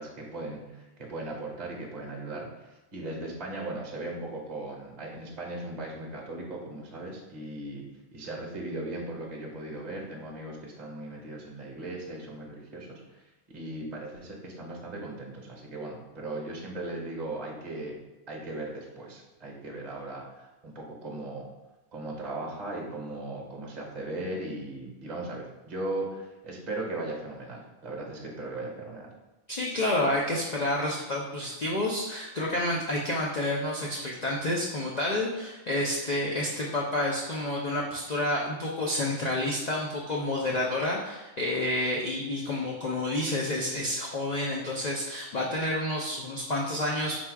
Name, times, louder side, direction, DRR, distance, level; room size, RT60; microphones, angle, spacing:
voice 1, 0.0-18.0 18.3-21.5 21.9-29.1, right 2 dB, 35° right, -2 dB, 0.8 m, -38 dB
voice 2, 29.5-47.2, left 1 dB, 65° left, -3 dB, 0.4 m, -29 dB
4.3 x 2.3 x 4.5 m, 1.1 s
omnidirectional pair, 1.4 m